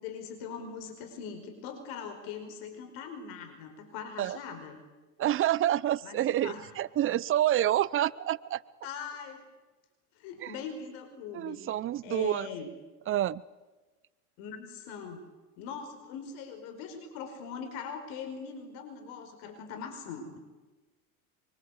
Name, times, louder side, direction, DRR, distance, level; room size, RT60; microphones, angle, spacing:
voice 1, 0.0-4.8 6.0-6.7 8.8-9.4 10.1-11.7 12.0-12.7 14.4-15.2 15.6-20.4, left 6 dB, 60° left, 6 dB, 5.0 m, -41 dB
voice 2, 5.2-8.6 10.4-10.5 11.3-12.5 13.1-13.4, right 12 dB, 30° right, 20 dB, 0.7 m, -28 dB
24.5 x 24.0 x 8.3 m, 1.2 s
hypercardioid pair, 110°, 45 cm